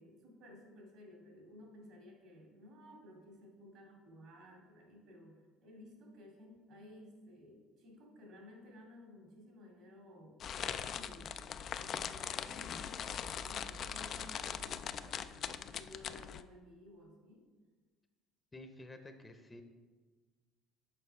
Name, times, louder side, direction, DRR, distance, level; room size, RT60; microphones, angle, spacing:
voice 1, 0.0-11.3 11.7-17.4, left 1 dB, 65° right, 0 dB, 2.2 m, -56 dB
sound 1, 10.4-16.4, left 8 dB, 50° left, 0.3 m, -41 dB
voice 2, 18.5-19.6, left 2 dB, 20° left, 7 dB, 0.7 m, -51 dB
6.7 x 4.9 x 4.7 m, 1.4 s
supercardioid pair, 80°, 0 cm